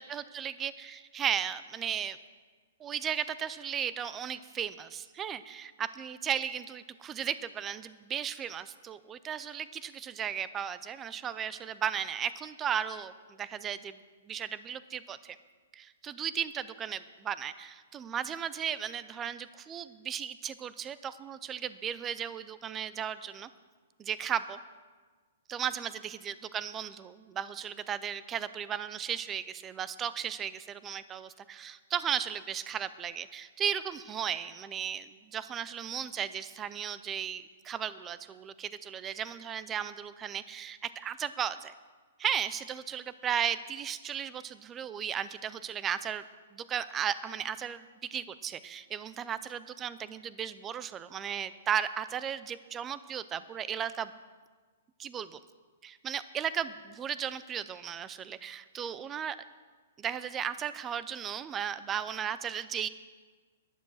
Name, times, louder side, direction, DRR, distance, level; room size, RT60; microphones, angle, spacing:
voice 1, 0.0-2.2 2.8-14.0 14.3-15.4 15.7-23.5 24.0-24.6 25.5-41.7 42.2-46.2 46.5-54.1 55.0-55.4 55.8-59.4 60.0-62.9, right 8 dB, 15° right, 15 dB, 0.4 m, -35 dB
11.0 x 10.5 x 6.3 m, 1.4 s
hypercardioid pair, 175°, 0 cm